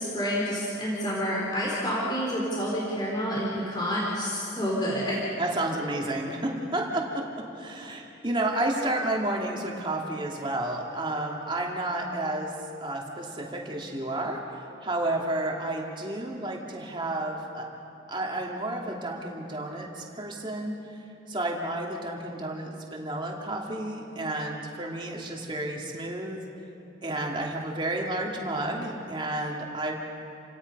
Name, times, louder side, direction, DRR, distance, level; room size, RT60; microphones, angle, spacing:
voice 1, 0.0-5.2, equal, 25° left, -5 dB, 3.9 m, -28 dB
voice 2, 5.4-12.5 12.8-17.7 18.1-20.8 21.3-26.4 27.0-29.9, right 1 dB, 25° right, -1 dB, 2.6 m, -31 dB
30.0 x 17.5 x 5.5 m, 2.9 s
head